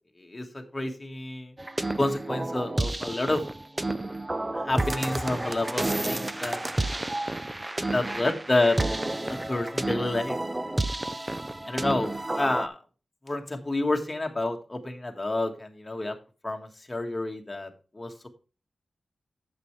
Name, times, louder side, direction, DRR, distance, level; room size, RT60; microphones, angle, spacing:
voice 1, 0.2-1.5 1.9-3.4 4.5-6.6 7.9-8.8 9.3-10.4 11.7-12.8 13.2-16.1 16.4-18.3, left 2 dB, 20° left, 3 dB, 1.6 m, -29 dB
sound 1, 1.6-12.7, right 2 dB, 15° right, 0.5 m, -30 dB
10.5 x 7.7 x 3.2 m, 0.34 s
wide cardioid pair, 130°, 0 cm